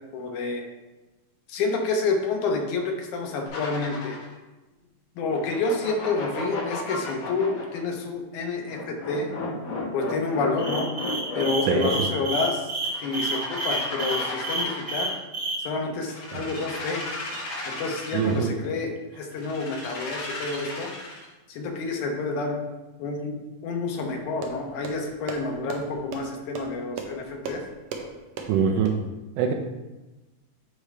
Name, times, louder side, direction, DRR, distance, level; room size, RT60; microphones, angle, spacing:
voice 1, 0.1-0.6 1.5-4.2 5.2-9.3 9.9-10.9 11.3-12.7 13.0-15.1 15.6-17.0 17.7-20.9 21.5-22.6 23.0-27.6, left 3 dB, 80° left, 2 dB, 2.4 m, -29 dB
sound 1, 3.4-4.3 5.3-7.8 8.7-12.1 12.8-15.2 16.0-18.4 19.4-21.3, left 3 dB, 60° left, 2.4 m, -35 dB
sound 2, 10.6-15.6, right 2 dB, 40° right, 0.7 m, -29 dB
voice 2, 11.7-12.1 16.3-16.4 18.1-18.5 28.5-28.9 29.4-29.5, right 7 dB, 90° right, 3 dB, 2.1 m, -23 dB
sound 3, 24.0-28.9, right 5 dB, 70° right, 1.6 m, -38 dB
8.5 x 4.9 x 3.3 m, 1.1 s
omnidirectional pair, 3.5 m